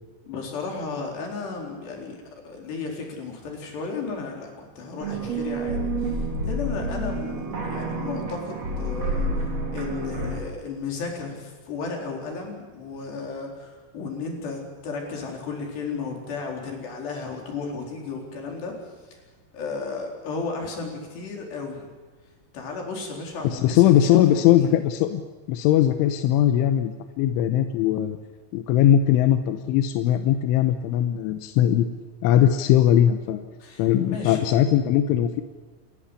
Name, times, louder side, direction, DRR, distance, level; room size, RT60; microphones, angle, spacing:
voice 1, 0.2-2.2 2.4-9.5 9.7-19.2 19.5-21.9 22.5-24.8 33.6-34.5, left 4 dB, 60° left, 1 dB, 6.2 m, -34 dB
sound 1, 5.0-10.4, right 2 dB, 35° right, 4.1 m, -29 dB
voice 2, 23.5-25.2 25.5-28.2 28.5-31.9 32.2-33.4 33.8-35.4, left 11 dB, 90° left, 8 dB, 3.4 m, -20 dB
29.5 x 13.5 x 10.0 m, 1.3 s
omnidirectional pair, 5.5 m